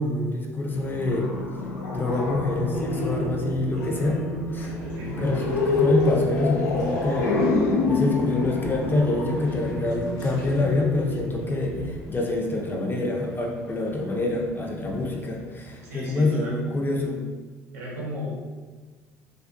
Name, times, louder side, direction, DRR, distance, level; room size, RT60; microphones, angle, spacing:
voice 1, 0.0-1.4 1.9-4.2 4.5-4.7 5.2-7.4 7.9-17.2, left 2 dB, 25° left, 0 dB, 0.5 m, -26 dB
sound 1, 0.7-10.4, left 4 dB, 85° left, 0.4 m, -27 dB
Wind, 1.9-11.9, right 2 dB, 45° right, 0.9 m, -35 dB
Train, 4.6-17.1, left 1 dB, 55° left, 0.9 m, -44 dB
voice 2, 4.9-5.3 15.8-16.6 17.7-18.4, equal, 80° right, -4 dB, 0.7 m, -35 dB
2.3 x 2.3 x 2.5 m, 1.4 s
hypercardioid pair, 60°, 8 cm